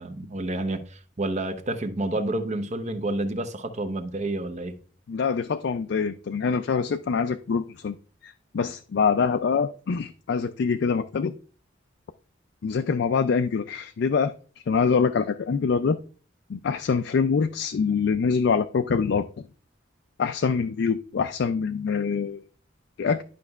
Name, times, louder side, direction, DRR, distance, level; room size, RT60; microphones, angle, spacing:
voice 1, 0.0-4.7, right 2 dB, 35° right, 0.7 m, -29 dB
voice 2, 5.1-8.0 8.2-11.3 12.6-16.0 16.5-19.3 20.2-22.4 23.0-23.2, left 5 dB, 60° left, 0.3 m, -25 dB
11.0 x 5.3 x 2.3 m
head